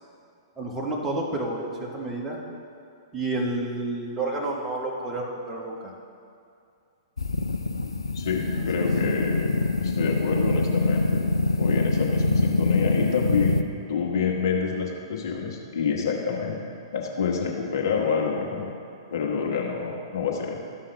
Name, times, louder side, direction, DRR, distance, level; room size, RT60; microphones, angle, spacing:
voice 1, 0.6-2.4 3.1-5.9 8.5-8.9, right 2 dB, 15° right, -3 dB, 1.4 m, -30 dB
sound 1, 7.2-13.6, left 2 dB, 80° left, 0.4 m, -24 dB
voice 2, 8.1-9.5 9.8-11.2 11.6-13.6 13.9-16.6 16.9-18.7 19.1-20.6, left 6 dB, 55° left, -1 dB, 1.3 m, -27 dB
13.5 x 5.6 x 3.3 m, 2.4 s
figure-of-eight pair, 110°, 3 cm